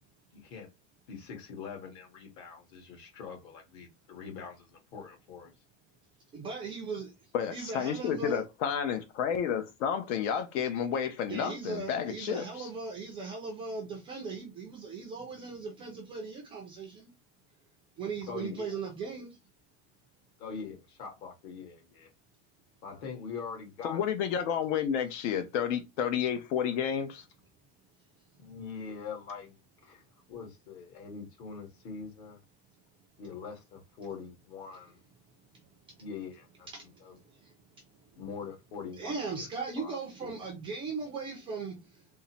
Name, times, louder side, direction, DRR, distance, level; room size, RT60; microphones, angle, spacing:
voice 1, 0.3-0.7 1.1-5.5 18.3-18.8 20.4-22.1 22.8-24.1 28.4-29.6 29.8-30.0 30.3-32.4 33.2-35.0 36.0-37.2 38.2-39.4 39.8-40.4, left 5 dB, 60° left, 1.6 m, -43 dB
voice 2, 6.3-7.1 7.5-8.4 11.3-17.1 18.0-19.3 39.0-41.8, right 4 dB, 15° right, 0.3 m, -38 dB
voice 3, 7.3-12.7 23.8-27.2, left 8 dB, 75° left, 0.7 m, -31 dB
3.7 x 2.0 x 4.1 m
supercardioid pair, 175°, 37 cm